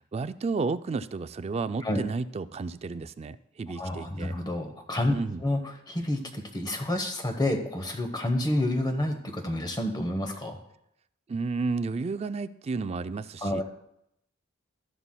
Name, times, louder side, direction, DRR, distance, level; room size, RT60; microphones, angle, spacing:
voice 1, 0.1-4.4 5.1-5.4 11.3-13.6, right 4 dB, 30° right, 13 dB, 0.3 m, -32 dB
voice 2, 3.8-5.1 5.4-5.6 5.9-10.6 13.4-13.6, left 1 dB, 20° left, 4 dB, 0.9 m, -29 dB
13.5 x 11.0 x 2.2 m, 0.77 s
head